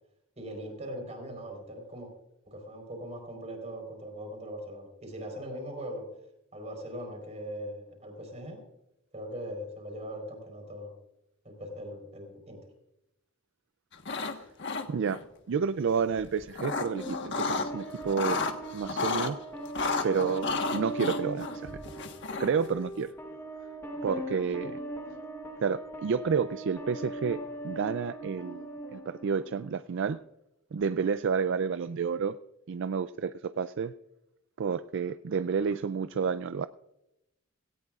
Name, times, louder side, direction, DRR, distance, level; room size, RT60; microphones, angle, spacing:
voice 1, 0.4-2.1 2.5-6.1 6.5-8.6 9.1-10.9 11.4-12.6, equal, 30° right, 3 dB, 4.1 m, -40 dB
sound 1, 13.9-14.3 14.6-15.2 16.2-17.7 18.0-19.3 19.7-22.7, left 4 dB, 55° left, 1.3 m, -32 dB
voice 2, 14.9-15.2 15.5-18.4 18.7-19.4 20.0-21.7 22.4-23.1 24.0-24.8 25.6-27.4 27.6-30.2 30.7-32.4 32.7-33.9 34.6-36.7, right 6 dB, 60° right, 13 dB, 0.4 m, -30 dB
sound 2, 16.8-29.8, right 1 dB, 10° left, 1.3 m, -40 dB
18.0 x 17.0 x 2.4 m, 0.90 s
head